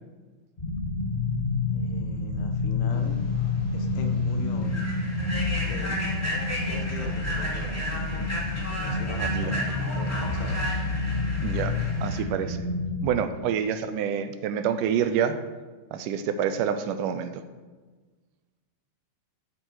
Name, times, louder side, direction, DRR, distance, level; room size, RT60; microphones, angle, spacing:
sound 1, 0.6-13.1, left 3 dB, 50° left, 0.6 m, -28 dB
voice 1, 1.7-3.2 3.7-4.9 5.7-5.9 6.7-8.3 8.8-10.7, left 4 dB, 80° left, 4 dB, 2.7 m, -40 dB
Human voice / Train, 3.3-3.5 3.9-4.1 4.6-12.2, right 1 dB, 5° left, 1.9 m, -34 dB
voice 2, 9.1-9.6 11.4-11.7 12.0-12.6 13.0-15.4 15.9-17.4, right 8 dB, 85° right, 10 dB, 2.3 m, -27 dB
13.0 x 7.7 x 4.9 m, 1.3 s
omnidirectional pair, 3.7 m